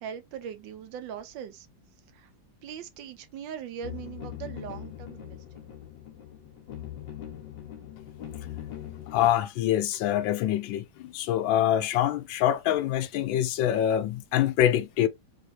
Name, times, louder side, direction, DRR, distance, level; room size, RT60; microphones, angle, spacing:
voice 1, 0.0-1.7 2.1-2.3 2.6-5.7, right 8 dB, 85° right, 1.4 m, -40 dB
sound 1, 3.8-9.3, left 11 dB, 70° left, 1.8 m, -41 dB
voice 2, 9.1-15.1, left 11 dB, 90° left, 1.4 m, -25 dB
4.0 x 3.4 x 2.7 m
omnidirectional pair, 2.0 m